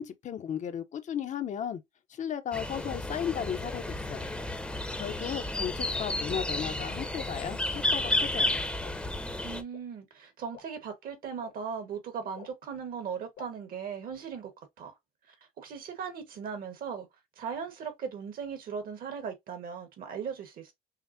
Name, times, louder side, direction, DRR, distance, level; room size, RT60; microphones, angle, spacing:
voice 1, 0.0-1.8 2.1-4.3 5.0-8.6, left 8 dB, 45° left, 0.6 m, -35 dB
sound 1, 2.5-9.6, left 1 dB, 5° left, 0.6 m, -32 dB
Gotas de lluvia mejorado, 6.4-6.5 7.1-7.2 8.0-8.1 8.8-8.9 9.7-9.8 10.5-10.6 11.4-11.5 12.4-12.5 13.4-13.5, left 9 dB, 75° left, 1.2 m, -48 dB
voice 2, 9.4-14.5 14.8-14.9 15.6-17.1 17.4-20.7, right 6 dB, 60° right, 1.3 m, -38 dB
5.6 x 2.0 x 2.6 m
cardioid pair, 110°, 17 cm